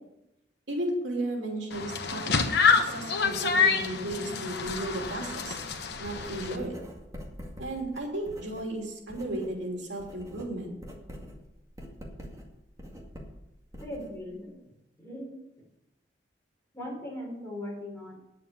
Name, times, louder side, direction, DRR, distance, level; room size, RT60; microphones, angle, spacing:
voice 1, 0.7-2.4 2.7-5.6 6.0-6.7 7.6-10.7, right 1 dB, 85° right, 0 dB, 3.0 m, -34 dB
sound 1, 1.7-6.6, left 5 dB, 65° left, 1.0 m, -27 dB
Writing, 4.6-9.6 9.8-14.5, equal, 20° right, 2.1 m, -45 dB
voice 2, 13.8-14.6 15.0-15.3 16.7-18.2, left 1 dB, 15° left, -3 dB, 4.6 m, -39 dB
9.9 x 7.5 x 7.5 m, 0.88 s
head